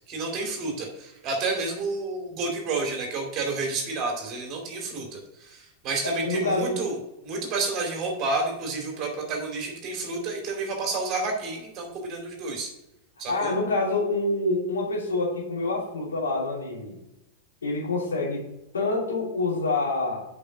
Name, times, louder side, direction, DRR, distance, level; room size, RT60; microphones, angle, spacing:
voice 1, 0.1-7.0 7.2-12.7 13.2-13.5, right 3 dB, 35° right, 1 dB, 2.6 m, -30 dB
voice 2, 6.0-6.8 13.3-17.0 17.6-18.4 18.7-20.2, left 2 dB, 70° left, -3 dB, 2.7 m, -26 dB
6.9 x 5.3 x 5.8 m, 0.88 s
figure-of-eight pair, 90°, 0 cm